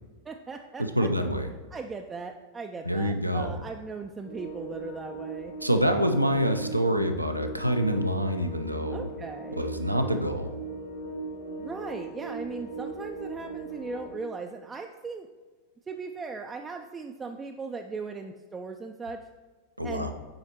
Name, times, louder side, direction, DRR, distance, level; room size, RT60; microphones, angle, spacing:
voice 1, 0.3-1.1 1.7-5.5 8.9-9.7 11.6-15.3 15.9-19.2 19.8-20.1, right 4 dB, 15° right, 4 dB, 0.3 m, -38 dB
voice 2, 0.8-1.5 2.9-3.6 5.6-9.1 9.6-10.5 19.8-20.1, equal, 90° right, 6 dB, 0.5 m, -26 dB
sound 1, 4.2-14.2, right 3 dB, 60° left, 1.4 m, -39 dB
7.7 x 4.9 x 2.9 m, 1.3 s
figure-of-eight pair, 90°, 0 cm